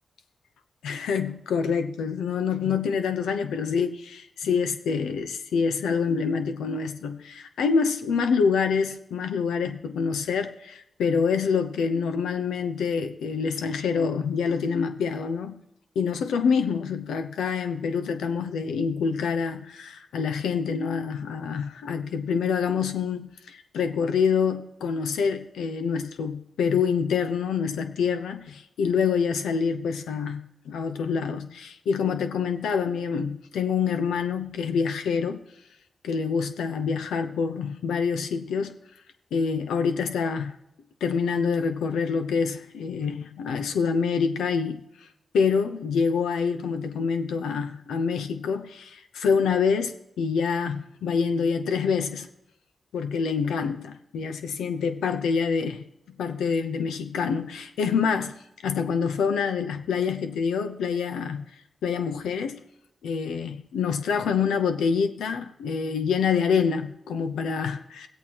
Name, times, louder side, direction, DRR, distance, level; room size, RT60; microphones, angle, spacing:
voice 1, 0.8-15.5 15.9-35.4 36.0-38.7 39.3-40.6 41.0-44.8 45.3-52.3 52.9-55.8 56.2-58.4 58.6-61.4 61.8-62.6 63.0-68.1, left 6 dB, 85° left, 0.8 m, -26 dB
17.5 x 8.3 x 2.9 m
supercardioid pair, 45°, 0 cm